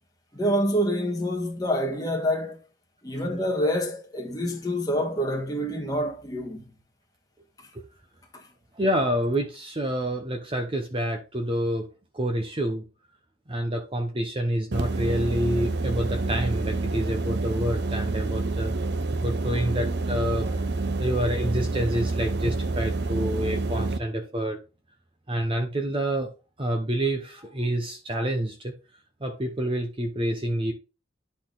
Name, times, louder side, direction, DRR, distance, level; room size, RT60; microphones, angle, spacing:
voice 1, 0.3-2.6 3.0-6.7 7.6-7.7 8.3-8.5, equal, 20° left, 1.4 m, -27 dB
voice 2, 8.7-11.9 12.1-12.8 13.5-18.7 19.2-20.7 21.0-24.6 25.3-26.3 26.6-28.7 29.2-30.7, right 1 dB, 30° right, 0.9 m, -28 dB
sound 1, 14.7-24.0, right 3 dB, 60° right, 0.6 m, -28 dB
10.5 x 4.1 x 4.0 m
head